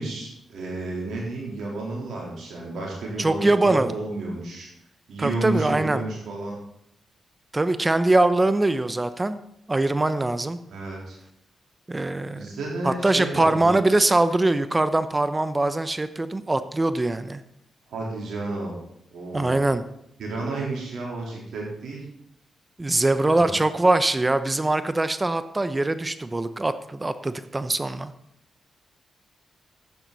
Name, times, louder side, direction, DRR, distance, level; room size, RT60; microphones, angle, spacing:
voice 1, 0.0-4.7 5.1-6.6 10.7-11.2 12.3-13.8 17.9-18.8 19.1-19.7 20.2-22.1 23.2-23.6, right 2 dB, 75° right, -3 dB, 3.9 m, -31 dB
voice 2, 3.2-3.9 5.2-6.0 7.5-9.4 9.7-10.6 11.9-12.5 12.8-17.4 19.3-19.8 22.8-28.1, right 2 dB, 25° right, 12 dB, 0.8 m, -22 dB
12.0 x 9.0 x 4.1 m, 0.76 s
supercardioid pair, 45°, 0 cm